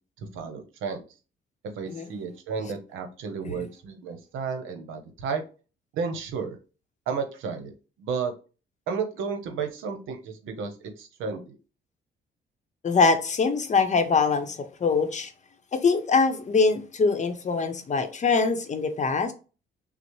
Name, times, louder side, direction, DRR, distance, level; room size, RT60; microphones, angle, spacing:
voice 1, 0.3-1.0 1.8-5.4 5.9-6.6 7.1-7.7 8.0-8.3 8.9-10.7 11.0-11.5, right 5 dB, 85° right, 0.8 m, -32 dB
voice 2, 12.8-15.3 15.7-19.3, left 4 dB, 35° left, 0.7 m, -23 dB
6.0 x 2.0 x 3.1 m
cardioid pair, 90°, 20 cm